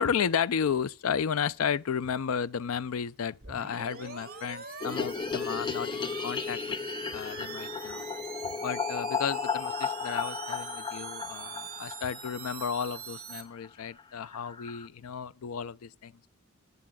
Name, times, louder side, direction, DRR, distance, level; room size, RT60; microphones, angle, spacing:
voice 1, 0.0-6.8 7.1-8.0 8.6-16.1, left 7 dB, 75° left, 0.5 m, -33 dB
sound 1, 3.4-13.4, right 7 dB, 45° right, 2.2 m, -43 dB
sound 2, 4.8-13.0 13.3-13.4 13.6-13.7 14.0-14.1 14.3-14.9, left 6 dB, 20° left, 0.4 m, -35 dB
20.5 x 8.4 x 2.3 m
head